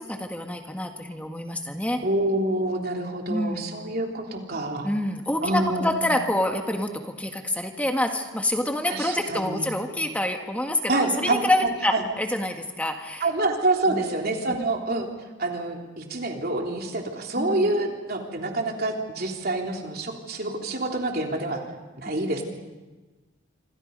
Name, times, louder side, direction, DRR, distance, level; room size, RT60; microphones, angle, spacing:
voice 1, 0.0-2.0 3.3-3.7 4.8-13.3 13.9-14.0 14.5-14.6 17.3-17.7 22.2-22.3, left 1 dB, 5° left, 4 dB, 1.6 m, -27 dB
voice 2, 2.0-4.9 5.4-6.0 8.9-9.7 10.9-11.4 11.9-12.0 13.2-15.1 15.4-21.6 22.0-22.4, right 2 dB, 50° right, 1 dB, 3.3 m, -27 dB
27.5 x 25.0 x 5.4 m, 1.2 s
head